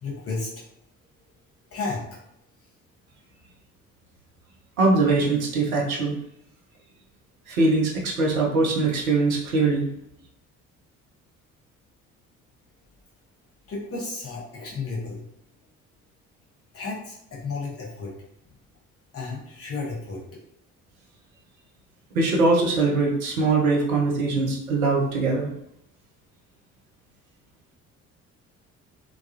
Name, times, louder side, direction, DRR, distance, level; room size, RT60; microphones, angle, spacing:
voice 1, 0.0-0.6 1.7-2.2 13.7-15.2 16.7-18.1 19.1-20.4, left 3 dB, 35° left, -4 dB, 0.9 m, -33 dB
voice 2, 4.8-6.2 7.5-9.8 22.1-25.5, right 3 dB, 80° right, -2 dB, 0.6 m, -22 dB
2.2 x 2.2 x 2.8 m, 0.76 s
figure-of-eight pair, 45°, 42 cm